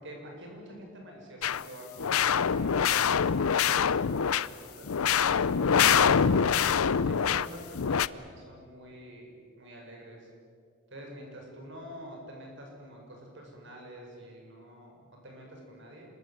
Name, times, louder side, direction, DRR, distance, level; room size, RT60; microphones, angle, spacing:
voice 1, 0.0-4.9 5.8-6.6 7.0-9.3 9.6-10.3 10.9-16.1, right 1 dB, 55° right, 0 dB, 7.2 m, -46 dB
sound 1, 1.4-1.6 2.0-4.5 4.9-7.5 7.7-8.1, left 7 dB, 80° left, 0.6 m, -24 dB
27.0 x 22.0 x 8.0 m, 2.2 s
head